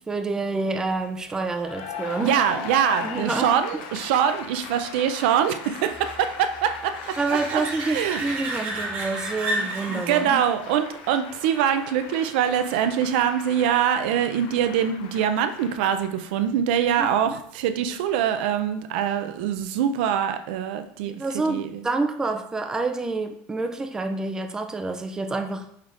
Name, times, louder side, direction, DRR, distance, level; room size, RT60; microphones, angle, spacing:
voice 1, 0.1-2.4 3.0-3.5 7.2-10.4 17.0-17.4 21.1-25.7, right 3 dB, 10° right, 6 dB, 0.3 m, -28 dB
sound 1, 1.3-12.6 18.2-18.3, right 1 dB, 40° right, 1.2 m, -35 dB
Cheering / Applause, 1.5-16.5, left 6 dB, 75° left, 0.5 m, -39 dB
voice 2, 2.2-7.2 7.5-8.2 9.6-21.8, right 9 dB, 85° right, 8 dB, 0.4 m, -24 dB
5.6 x 3.3 x 2.5 m, 0.69 s
cardioid pair, 155°, 5 cm